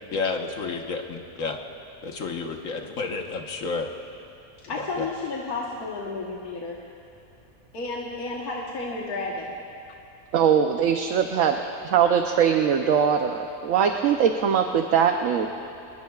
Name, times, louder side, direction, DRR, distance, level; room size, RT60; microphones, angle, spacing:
voice 1, 0.1-1.6 2.0-3.9 4.8-5.0, left 4 dB, 65° left, 3 dB, 1.6 m, -30 dB
voice 2, 4.7-6.8 7.7-9.6, left 3 dB, 80° left, -4 dB, 1.9 m, -32 dB
voice 3, 10.3-15.5, right 7 dB, 65° right, 4 dB, 1.1 m, -21 dB
26.5 x 21.5 x 2.4 m, 2.7 s
omnidirectional pair, 1.6 m